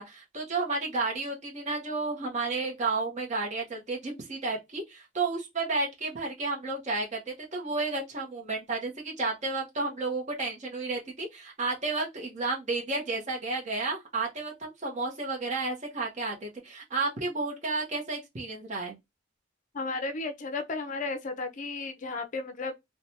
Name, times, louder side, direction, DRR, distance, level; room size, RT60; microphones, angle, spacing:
voice 1, 0.0-19.0, right 3 dB, 35° right, 0.9 m, -32 dB
voice 2, 19.7-22.7, left 3 dB, 40° left, 0.4 m, -34 dB
3.2 x 2.2 x 2.7 m
head